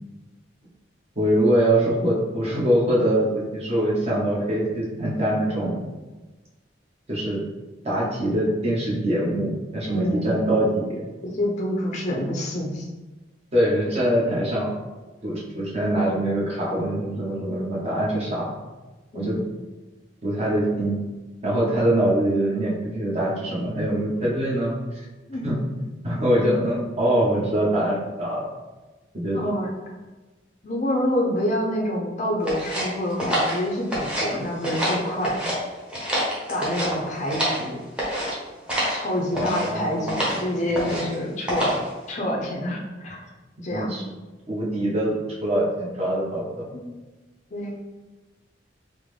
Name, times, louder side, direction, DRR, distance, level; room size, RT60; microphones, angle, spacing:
voice 1, 1.2-5.8 7.1-7.4 7.8-11.0 13.5-14.7 15.2-18.5 19.1-19.4 20.2-21.0 21.4-25.0 25.4-25.6 26.0-28.4 29.2-29.4 39.3-40.4 43.7-44.0 44.5-46.7, right 1 dB, 35° right, -6 dB, 0.9 m, -23 dB
voice 2, 9.9-10.4 11.2-12.9 19.1-19.5 25.3-25.5 29.3-29.7 30.6-35.4 36.5-37.8 38.9-41.8 42.1-43.2 43.6-43.9 46.7-46.9 47.5-47.8, left 1 dB, 40° left, -2 dB, 0.5 m, -27 dB
sound 1, 32.5-34.3 34.6-35.6 35.9-37.6 38.0-38.3 38.7-39.0 39.3-39.7 40.1-40.4 40.7-41.1 41.5-41.9, equal, 5° right, 0.8 m, -26 dB
3.6 x 2.1 x 3.2 m, 1.2 s
head